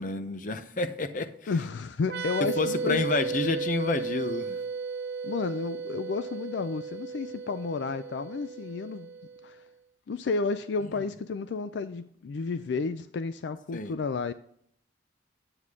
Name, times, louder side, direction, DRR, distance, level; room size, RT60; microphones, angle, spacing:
voice 1, 0.0-1.5 2.4-4.6 13.7-13.9, left 3 dB, 45° left, 0.7 m, -29 dB
voice 2, 1.5-3.1 5.2-9.1 9.4-9.6 10.1-14.3, left 4 dB, 70° left, 0.4 m, -32 dB
sound 1, 2.0-9.5, right 5 dB, 60° right, 0.6 m, -35 dB
9.4 x 8.1 x 3.6 m
head